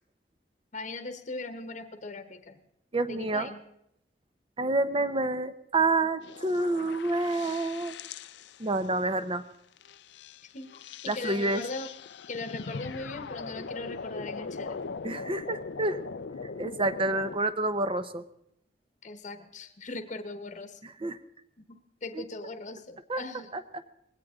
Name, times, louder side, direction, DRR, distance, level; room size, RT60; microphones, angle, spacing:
voice 1, 0.7-2.6 3.1-3.6 10.5-11.9 12.3-14.8 19.0-20.8 21.6-23.5, left 3 dB, 45° left, 9 dB, 1.1 m, -39 dB
voice 2, 2.9-3.5 4.6-7.9 8.6-9.4 11.1-11.6 15.0-16.0 16.6-18.2 20.8-21.2 22.1-22.2 23.1-23.2 23.5-23.6, right 2 dB, 30° right, 11 dB, 0.8 m, -28 dB
sound 1, 6.2-8.9 9.8-17.4, left 5 dB, 75° left, 0.5 m, -41 dB
20.5 x 17.0 x 3.7 m, 0.76 s
head